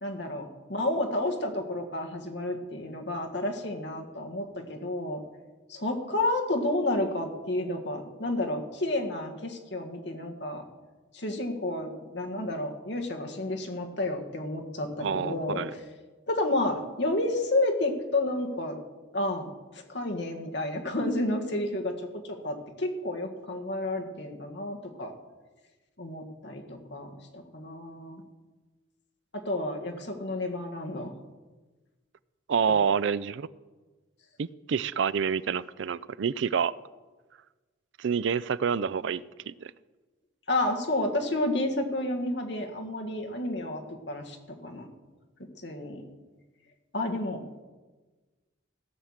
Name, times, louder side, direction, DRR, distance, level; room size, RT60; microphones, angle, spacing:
voice 1, 0.0-5.2 5.7-10.6 11.1-15.8 16.3-18.8 19.1-25.1 26.0-28.2 29.3-31.1 40.5-44.4 44.6-44.9 45.6-46.0 46.9-47.4, left 1 dB, 60° left, 1.7 m, -31 dB
voice 2, 15.0-15.7 32.5-33.5 34.4-36.7 38.0-39.7, right 6 dB, 70° right, 0.4 m, -28 dB
16.0 x 6.5 x 7.3 m
head